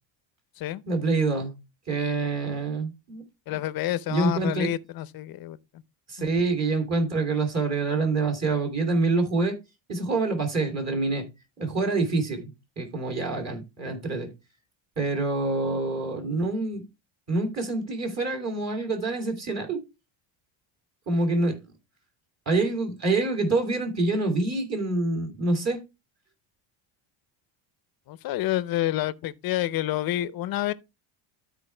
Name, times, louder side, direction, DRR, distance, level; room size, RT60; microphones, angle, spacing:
voice 1, 0.9-1.5 1.9-3.2 4.1-4.7 6.1-9.6 9.9-11.3 11.6-12.5 12.8-14.3 15.0-16.8 17.3-19.8 21.1-21.6 22.5-25.8, right 3 dB, 30° right, 3.0 m, -26 dB
voice 2, 3.5-5.8 28.1-30.7, left 14 dB, 45° left, 0.7 m, -28 dB
13.0 x 4.6 x 3.2 m
cardioid pair, 135°, 49 cm